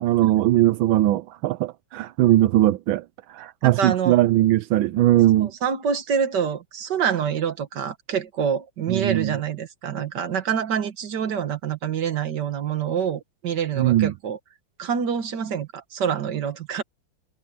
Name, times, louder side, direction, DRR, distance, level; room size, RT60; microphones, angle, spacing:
voice 1, 0.0-3.0 3.3-5.5 8.9-9.3 13.8-14.1, right 14 dB, 85° right, 1.4 m, -20 dB
voice 2, 3.6-4.2 5.4-14.4 14.8-16.8, right 7 dB, 60° right, 2.0 m, -26 dB
omnidirectional pair, 2.1 m